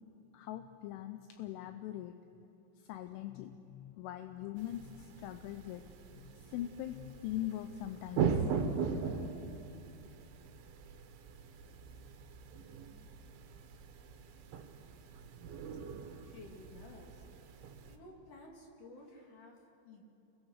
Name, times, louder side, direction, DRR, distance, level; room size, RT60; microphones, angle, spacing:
voice 1, 0.3-2.1 2.8-5.8 6.1-8.5, left 13 dB, 80° left, 8 dB, 3.1 m, -42 dB
sound 1, 4.6-18.0, right 6 dB, 70° right, 3.6 m, -40 dB
voice 2, 16.2-17.2 17.8-20.0, left 2 dB, 45° left, 0 dB, 3.4 m, -54 dB
28.5 x 22.0 x 6.5 m, 2.9 s
omnidirectional pair, 5.9 m